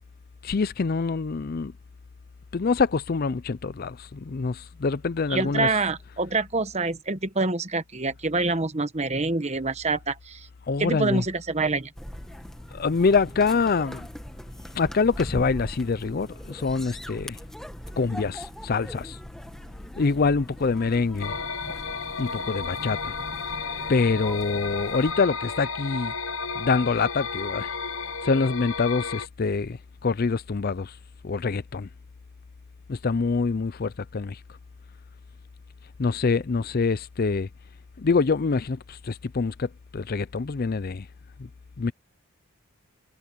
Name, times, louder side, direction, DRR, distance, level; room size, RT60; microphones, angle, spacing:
voice 1, 0.4-1.7 2.5-5.7 10.7-11.2 12.7-14.1 14.7-17.4 18.0-19.2 20.0-21.3 22.2-23.2 23.9-26.1 26.6-27.7 28.2-30.9 31.2-31.9 32.9-34.4 36.0-37.5 38.0-41.1 41.8-41.9, left 4 dB, 40° left, 0.4 m, -25 dB
voice 2, 5.3-10.5 10.8-11.9, right 3 dB, 30° right, 1.1 m, -26 dB
sound 1, 12.0-25.1, equal, ahead, 1.5 m, -41 dB
sound 2, 21.2-29.3, left 5 dB, 60° left, 1.0 m, -33 dB
head